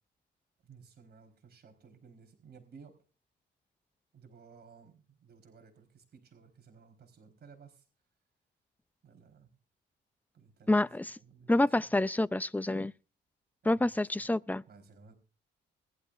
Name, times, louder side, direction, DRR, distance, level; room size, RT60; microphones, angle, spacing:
voice 1, 0.6-3.0 4.1-7.8 9.0-9.5 10.3-10.9 11.2-12.0 13.6-14.3 14.7-15.1, right 5 dB, 55° right, 4.3 m, -56 dB
voice 2, 10.7-11.2 11.5-12.9 13.6-14.6, left 2 dB, 10° left, 0.6 m, -28 dB
21.0 x 12.0 x 2.6 m
cardioid pair, 90°, 20 cm